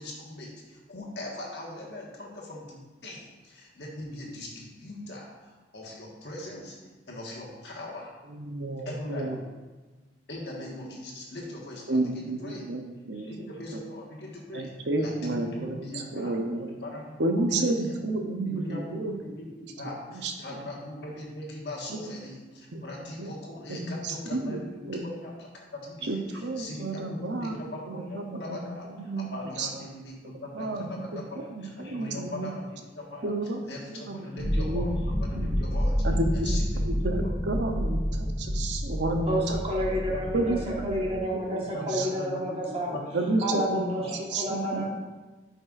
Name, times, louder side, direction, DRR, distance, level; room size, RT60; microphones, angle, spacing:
voice 1, 0.0-6.8 7.1-8.1 8.8-9.4 10.3-12.6 13.1-14.7 15.0-16.3 16.8-17.9 18.4-19.5 19.8-33.3 33.6-36.0 36.3-36.8 37.2-37.4 39.8-40.4 41.5-43.2 44.0-44.2, left 1 dB, 60° left, -3 dB, 1.5 m, -40 dB
voice 2, 8.3-9.3 11.9-13.5 14.5-15.8 16.1-16.7 17.2-19.1 20.2-20.3 21.9-22.0 22.7-22.8 23.2-23.3 23.7-24.6 24.9-25.1 26.0-27.6 27.9-29.3 29.6-29.7 30.5-30.9 31.1-31.2 31.8-32.5 33.2-33.6 33.9-34.9 35.3-35.5 36.0-36.5 36.8-39.4 40.3-41.0 41.3-42.1 42.5-42.6 42.9-43.9 44.3-44.8, right 2 dB, 70° right, 4 dB, 0.7 m, -31 dB
sound 1, 34.4-41.2, equal, 40° left, 1.4 m, -29 dB
voice 3, 39.2-43.0 43.4-44.9, equal, 30° right, -3 dB, 1.3 m, -30 dB
9.5 x 5.4 x 2.5 m, 1.3 s
head